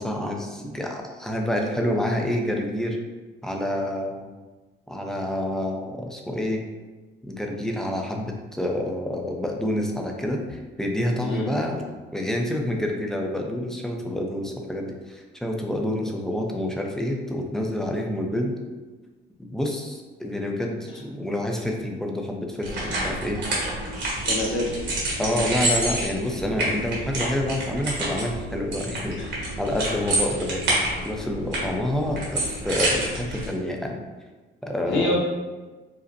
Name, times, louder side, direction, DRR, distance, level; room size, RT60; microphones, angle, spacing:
voice 1, 0.0-3.0 3.4-4.3 4.9-6.6 7.2-11.9 12.1-18.5 19.4-23.4 25.2-34.0 34.6-35.2, left 1 dB, ahead, 1 dB, 0.5 m, -28 dB
voice 2, 11.2-11.5 24.3-24.7 25.2-25.4 29.2-29.3 34.9-35.2, left 2 dB, 75° left, -3 dB, 0.6 m, -26 dB
sound 1, 22.6-33.5, right 1 dB, 60° right, 1.4 m, -28 dB
5.1 x 2.1 x 2.6 m, 1.2 s
cardioid pair, 90°, 20 cm